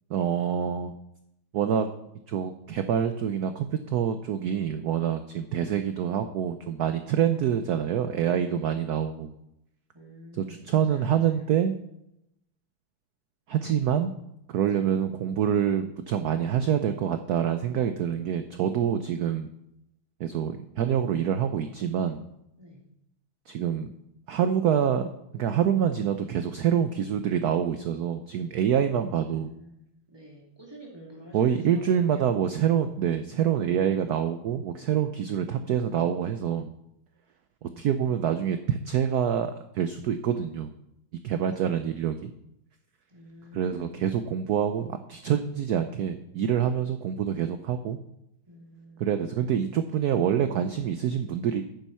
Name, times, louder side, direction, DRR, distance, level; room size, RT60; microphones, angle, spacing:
voice 1, 0.1-0.9 1.5-1.9 2.3-9.3 10.4-11.7 13.5-14.1 14.5-19.5 20.2-22.2 23.5-23.9 24.3-25.1 25.3-29.5 31.3-36.7 37.8-40.7 41.2-42.3 43.5-48.0 49.0-51.6, right 9 dB, 80° right, 9 dB, 0.8 m, -26 dB
voice 2, 7.0-7.5 8.4-8.8 9.9-11.4 14.6-15.1 22.6-22.8 29.1-32.4 37.6-38.5 41.4-41.7 43.1-43.8 48.5-49.2, equal, 10° right, -2 dB, 2.4 m, -50 dB
9.1 x 7.3 x 5.5 m, 0.81 s
omnidirectional pair, 2.3 m